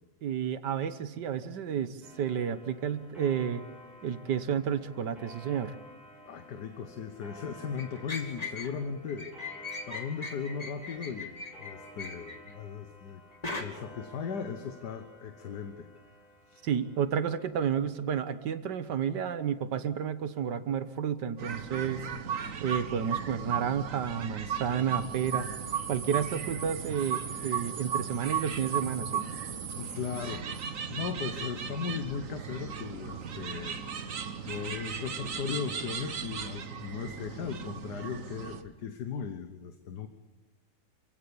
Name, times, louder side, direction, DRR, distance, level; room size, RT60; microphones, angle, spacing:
voice 1, 0.2-3.6 4.0-5.7 16.6-22.1 22.6-25.5 25.9-29.3, right 8 dB, 70° right, 12 dB, 1.6 m, -31 dB
Clock, 2.0-18.1, equal, ahead, 6.8 m, -53 dB
voice 2, 6.2-13.2 13.6-15.9 16.5-16.6 29.8-34.2 34.4-40.1, left 6 dB, 65° left, 7 dB, 1.7 m, -38 dB
sound 1, 7.8-8.7 9.1-12.5 13.4-13.6, left 3 dB, 20° left, 2.3 m, -39 dB
sound 2, 21.4-38.6, right 7 dB, 50° right, 1.4 m, -36 dB
27.5 x 16.5 x 7.1 m, 1.1 s
omnidirectional pair, 2.0 m